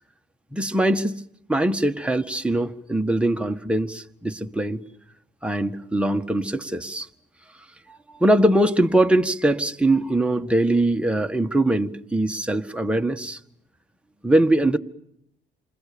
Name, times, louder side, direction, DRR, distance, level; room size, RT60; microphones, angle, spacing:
voice 1, 0.5-1.2 1.5-4.8 5.4-7.1 7.9-13.4 14.2-14.8, right 1 dB, 5° right, 5 dB, 1.7 m, -22 dB
29.0 x 26.0 x 7.0 m, 0.77 s
cardioid pair, 90°, 20 cm